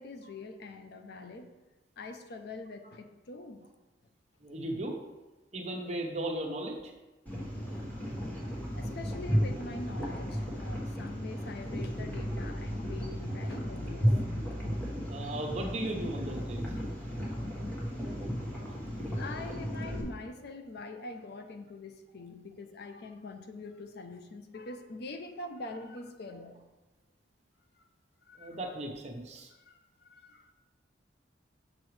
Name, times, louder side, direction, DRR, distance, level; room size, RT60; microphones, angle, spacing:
voice 1, 0.0-1.5 2.0-3.7 7.7-7.8 8.1-8.2 8.7-14.4 19.2-26.6 27.8-27.9 28.2-28.6 29.5-30.5, left 2 dB, 65° left, 7 dB, 0.5 m, -44 dB
voice 2, 4.4-5.0 5.5-6.9 15.1-16.7 28.4-29.5, right 1 dB, 40° right, 1 dB, 0.9 m, -36 dB
sound 1, 7.3-20.0, equal, 10° left, 1.3 m, -34 dB
6.2 x 5.9 x 3.2 m, 1.1 s
head